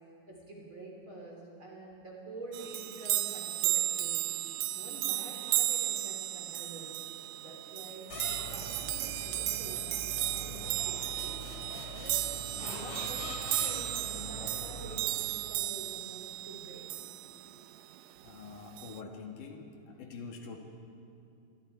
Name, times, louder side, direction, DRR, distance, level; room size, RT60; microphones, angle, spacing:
voice 1, 0.3-4.3 4.8-7.0 7.4-10.0 10.3-11.5 12.6-17.4 18.2-18.4, right 2 dB, 35° right, -2 dB, 3.8 m, -48 dB
sound 1, 2.5-17.6 18.8-19.0, right 15 dB, 80° right, 1.9 m, -34 dB
sound 2, 8.1-15.5, equal, 40° left, 3.1 m, -43 dB
voice 2, 18.2-20.6, left 4 dB, 65° left, 2 dB, 3.2 m, -45 dB
27.5 x 21.5 x 4.7 m, 2.6 s
omnidirectional pair, 4.1 m